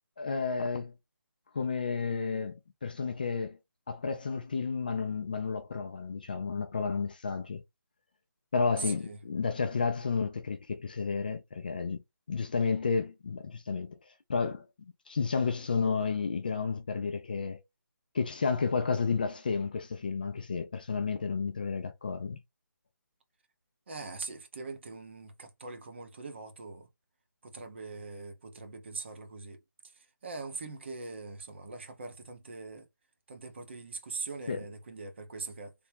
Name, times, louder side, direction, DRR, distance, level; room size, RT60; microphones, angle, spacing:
voice 1, 0.2-0.9 1.5-3.6 3.9-7.6 8.5-12.0 12.3-13.9 14.3-14.7 15.1-17.6 18.1-22.4 34.5-34.6, left 5 dB, 25° left, 0.4 m, -31 dB
voice 2, 8.8-9.2 23.9-26.9 27.4-29.6 29.9-32.9 33.3-35.7, right 4 dB, 35° right, 0.7 m, -42 dB
3.5 x 2.0 x 4.2 m
hypercardioid pair, 170°, 11 cm